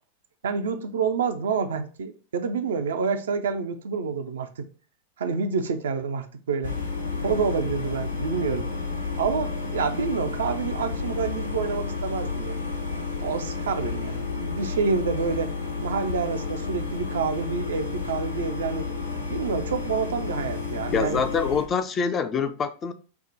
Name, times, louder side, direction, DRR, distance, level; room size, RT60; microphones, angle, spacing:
voice 1, 0.4-4.7 5.2-6.8 7.2-8.7 9.2-12.6 13.2-18.9 19.3-21.2, right 5 dB, 65° right, 0.4 m, -28 dB
sound 1, 6.6-21.6, left 4 dB, 80° left, 0.9 m, -31 dB
voice 2, 20.9-22.9, left 6 dB, 25° left, 0.4 m, -25 dB
4.6 x 2.1 x 3.8 m
figure-of-eight pair, 90°, 0 cm